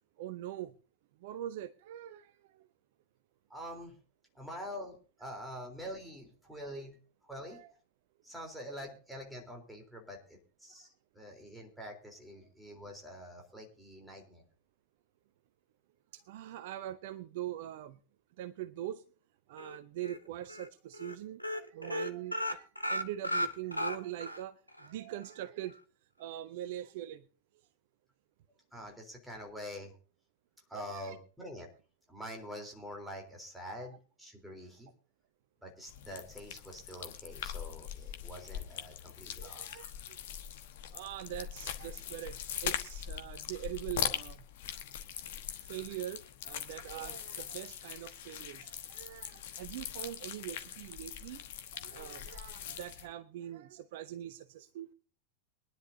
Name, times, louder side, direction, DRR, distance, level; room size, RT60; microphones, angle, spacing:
voice 1, 0.2-0.7 1.2-2.7 7.5-7.7 16.1-18.0 18.4-19.0 19.5-25.8 26.2-27.2 30.7-31.2 33.8-33.9 39.4-39.9 40.9-44.5 45.6-51.4 51.7-54.9, right 12 dB, 50° right, 14 dB, 0.6 m, -43 dB
voice 2, 3.5-4.0 4.3-7.0 7.2-7.6 8.2-14.4 28.7-30.0 30.7-31.7 32.1-34.9 35.6-39.8, equal, 5° right, 1 dB, 3.8 m, -46 dB
sound 1, 19.6-20.2 20.5-20.7 20.9-21.1 21.4-24.4 24.8-24.9 25.2-25.3, left 1 dB, 90° left, 1.0 m, -35 dB
sound 2, 35.9-53.1, left 10 dB, 55° left, 1.2 m, -41 dB
23.0 x 10.5 x 2.8 m, 0.37 s
figure-of-eight pair, 90°, 0 cm